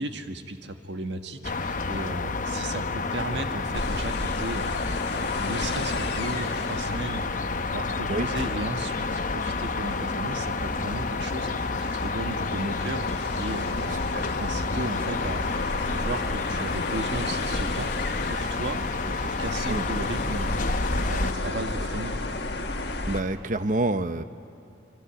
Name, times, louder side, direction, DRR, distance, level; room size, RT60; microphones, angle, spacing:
voice 1, 0.0-4.9 5.3-7.3 7.7-13.1 13.4-14.0 14.4-17.9 18.3-18.8 19.2-20.5 20.9-22.1, right 1 dB, 70° right, 6 dB, 1.6 m, -35 dB
sound 1, 1.4-21.3, left 3 dB, 45° left, 0.8 m, -30 dB
sound 2, 3.7-23.2, left 2 dB, 65° left, 1.7 m, -33 dB
voice 2, 23.1-24.2, right 2 dB, 45° right, 11 dB, 0.8 m, -27 dB
26.5 x 24.5 x 9.1 m, 2.6 s
head